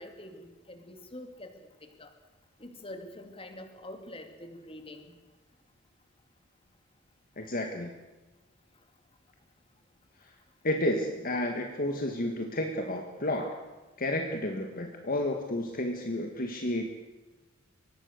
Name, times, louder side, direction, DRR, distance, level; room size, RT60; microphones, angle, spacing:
voice 1, 0.0-2.1 2.6-5.2, left 1 dB, 25° left, 6 dB, 2.5 m, -45 dB
voice 2, 7.4-7.9 10.6-13.6 14.0-16.9, left 1 dB, 45° left, 4 dB, 1.8 m, -31 dB
23.5 x 19.0 x 6.6 m, 1.2 s
head